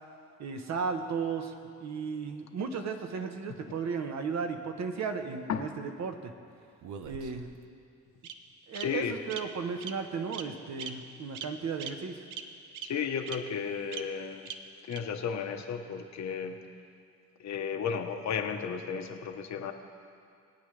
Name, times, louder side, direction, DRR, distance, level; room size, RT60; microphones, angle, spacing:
voice 1, 0.4-1.5 1.8-6.3 7.0-7.5 8.7-12.2, right 5 dB, 60° right, 5 dB, 1.2 m, -35 dB
Bird vocalization bird call bird song, 6.8-7.6 8.2-8.3 8.7-8.8 9.3-9.4 9.8-9.9 10.3-10.5 10.8-10.9 11.3-11.5 11.8-11.9 12.3-12.4 12.7-12.9 13.3-13.4 13.9-14.0 14.5-14.6 14.9-15.0, right 9 dB, 85° right, 0.8 m, -39 dB
voice 2, 8.7-9.1 12.8-14.5 14.9-16.6 17.4-19.7, left 7 dB, 65° left, 5 dB, 1.1 m, -34 dB
22.0 x 8.7 x 3.3 m, 2.4 s
cardioid pair, 90°, 30 cm